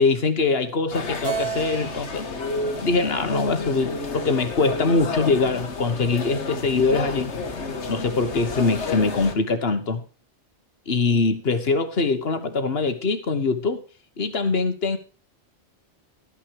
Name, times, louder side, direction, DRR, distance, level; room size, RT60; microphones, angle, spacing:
voice 1, 0.0-2.2 2.8-7.3 7.9-10.0 10.9-13.8 14.2-15.0, left 4 dB, 60° left, 1.5 m, -23 dB
sound 1, 0.9-9.3, left 3 dB, 85° left, 1.6 m, -31 dB
Keyboard (musical), 1.2-4.7, right 6 dB, 55° right, 2.4 m, -35 dB
13.0 x 9.1 x 4.7 m
omnidirectional pair, 1.1 m